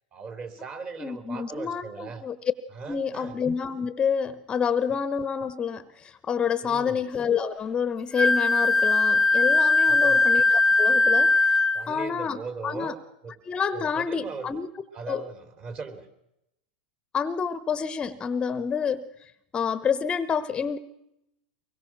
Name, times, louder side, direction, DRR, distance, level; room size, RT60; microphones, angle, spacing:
voice 1, 0.1-2.2 2.7-3.4 6.6-7.0 9.8-10.3 11.7-13.0 13.2-13.4 13.7-14.5 14.9-16.1, right 4 dB, 30° right, 10 dB, 3.5 m, -38 dB
voice 2, 1.0-2.4 2.9-12.9 13.5-14.7 15.1-15.2 17.1-20.8, left 6 dB, 20° left, 14 dB, 1.0 m, -28 dB
Wind instrument woodwind instrument, 8.2-11.9, left 3 dB, 5° left, 0.7 m, -20 dB
24.0 x 21.5 x 6.1 m, 0.83 s
supercardioid pair, 130°, 5 cm